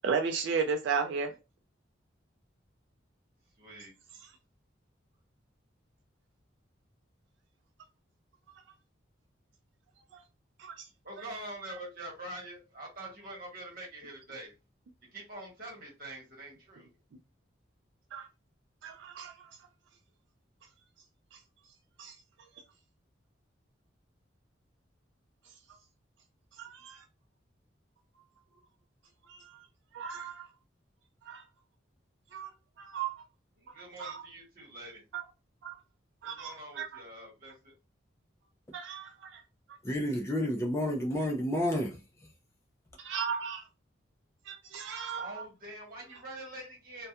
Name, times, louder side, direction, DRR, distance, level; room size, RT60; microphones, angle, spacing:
voice 1, 0.0-1.3 10.1-10.2 10.6-10.9 18.1-18.3 18.8-19.5 22.0-22.2 26.6-27.0 29.2-29.7 29.9-30.5 31.3-31.4 32.3-32.5 32.8-33.1 34.0-34.2 35.1-35.2 35.6-35.8 36.2-36.9 38.7-39.4 43.0-43.6 44.5-45.4, right 6 dB, 70° right, 0.3 m, -35 dB
voice 2, 3.6-3.9 11.0-14.5 15.1-16.9 33.6-35.0 36.2-37.7 45.2-47.1, right 1 dB, 45° right, 1.0 m, -45 dB
voice 3, 39.8-42.0, left 1 dB, 15° left, 0.3 m, -30 dB
2.3 x 2.1 x 2.7 m
head